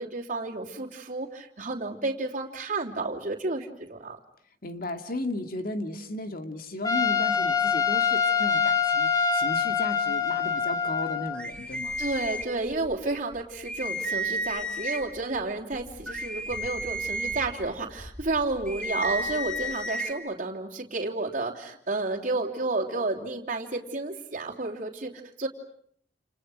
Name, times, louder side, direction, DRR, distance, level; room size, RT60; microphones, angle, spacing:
voice 1, 0.0-4.2 12.0-25.5, right 3 dB, 45° right, -3 dB, 3.3 m, -31 dB
voice 2, 4.6-12.0, left 1 dB, 55° left, 7 dB, 2.3 m, -35 dB
Trumpet, 6.8-11.4, left 6 dB, 20° left, 2.4 m, -25 dB
sound 1, 11.3-12.9 13.3-13.4 13.7-15.2 15.7-20.1, equal, 5° left, 3.1 m, -33 dB
29.5 x 29.5 x 6.4 m, 0.66 s
head